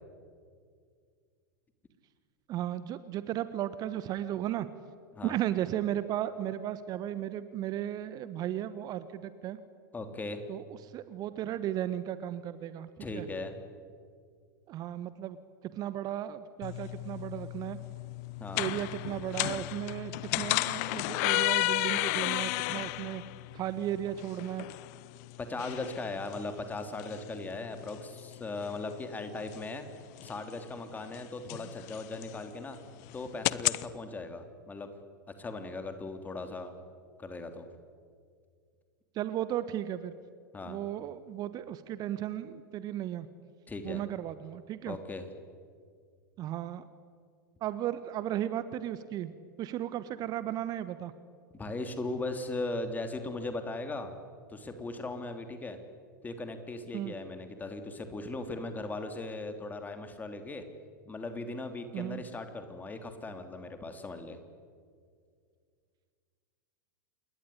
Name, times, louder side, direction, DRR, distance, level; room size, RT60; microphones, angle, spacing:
voice 1, 2.5-4.7 5.2-9.6 10.5-13.3 14.7-15.4 15.7-17.8 18.5-23.2 23.5-24.7 39.1-40.1 40.6-43.3 43.8-45.0 46.4-46.8 47.6-51.1 56.9-57.1 61.9-62.2, right 12 dB, 35° right, 14 dB, 1.2 m, -35 dB
voice 2, 9.9-10.4 13.0-13.5 18.4-18.7 25.4-29.8 30.2-32.8 33.1-34.9 35.4-36.7 37.2-37.7 40.5-40.8 43.7-44.0 44.9-45.3 51.5-54.1 54.5-55.8 56.2-60.6 61.1-64.4, left 2 dB, 15° left, 7 dB, 3.2 m, -38 dB
sound 1, 16.6-33.8, left 21 dB, 50° left, 0.8 m, -34 dB
28.0 x 21.0 x 9.8 m, 2.1 s
figure-of-eight pair, 90°, 11 cm